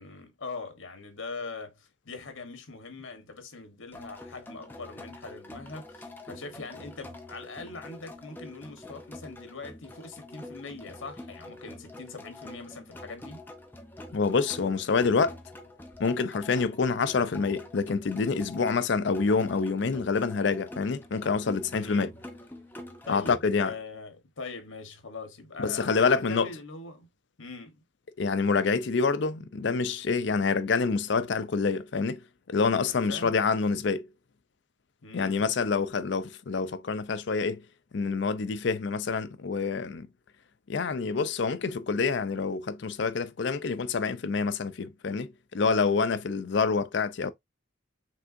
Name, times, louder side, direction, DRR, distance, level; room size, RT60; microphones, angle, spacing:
voice 1, 0.0-13.4 21.7-22.2 23.1-27.1 27.4-27.8 32.8-33.3 35.0-35.4, left 3 dB, 80° left, 1.2 m, -42 dB
sound 1, 3.9-23.4, left 2 dB, 10° left, 0.6 m, -46 dB
voice 2, 14.1-15.4 16.0-22.1 23.1-23.7 25.6-26.5 28.2-32.2 32.5-34.1 35.1-37.6 37.9-40.1 40.7-47.3, left 4 dB, 60° left, 0.5 m, -27 dB
5.4 x 3.5 x 2.5 m
head